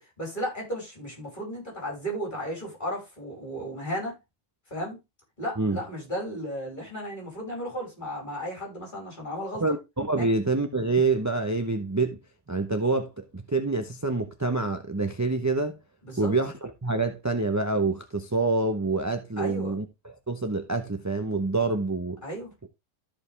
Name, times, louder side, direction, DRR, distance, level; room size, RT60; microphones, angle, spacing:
voice 1, 0.0-4.1 4.7-5.0 5.4-9.6 10.2-10.3 16.0-16.3 19.4-19.7 22.2-22.5, equal, 25° left, 5.2 m, -34 dB
voice 2, 9.6-12.2 12.5-15.8 16.2-22.2, right 3 dB, 20° right, 0.5 m, -27 dB
13.5 x 5.2 x 3.4 m
omnidirectional pair, 1.8 m